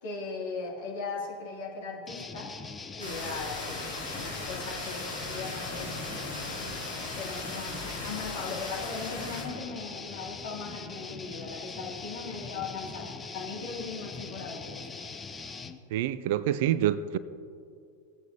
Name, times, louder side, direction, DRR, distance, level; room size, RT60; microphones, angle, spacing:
voice 1, 0.0-2.5 3.0-6.3 7.2-14.8, left 4 dB, 55° left, -3 dB, 2.4 m, -38 dB
sound 1, 2.1-15.8, left 4 dB, 15° left, 0.5 m, -42 dB
sound 2, 3.0-9.4, left 2 dB, 75° left, 2.6 m, -38 dB
voice 2, 15.9-17.2, right 11 dB, 50° right, 16 dB, 0.3 m, -27 dB
17.5 x 8.1 x 2.8 m, 2.4 s
figure-of-eight pair, 90°, 0 cm